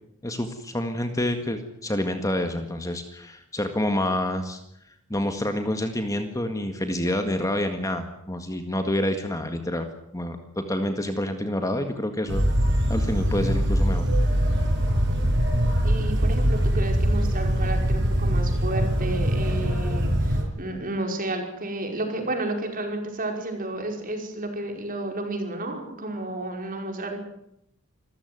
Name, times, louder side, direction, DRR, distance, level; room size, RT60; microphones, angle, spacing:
voice 1, 0.2-4.6 5.1-9.9 10.1-12.4 12.9-14.1, left 1 dB, 15° left, 7 dB, 1.8 m, -28 dB
sound 1, 12.3-20.4, equal, 55° right, 6.7 m, -22 dB
voice 2, 15.8-27.2, right 2 dB, 40° right, 4 dB, 5.2 m, -31 dB
26.5 x 15.0 x 9.6 m, 0.79 s
head